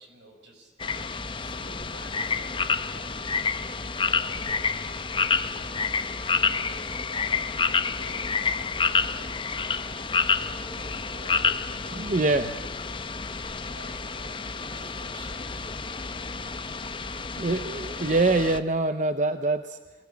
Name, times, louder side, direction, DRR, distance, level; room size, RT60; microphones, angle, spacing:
voice 1, 0.0-3.2 3.6-4.6 5.0-13.0 13.2-15.7, right 1 dB, 80° right, 4 dB, 5.8 m, -50 dB
sound 1, 0.8-18.6, left 5 dB, 25° left, 0.8 m, -29 dB
voice 2, 12.0-12.5 17.1-19.8, right 2 dB, 40° right, 9 dB, 0.8 m, -25 dB
25.0 x 18.0 x 8.6 m, 1.3 s
head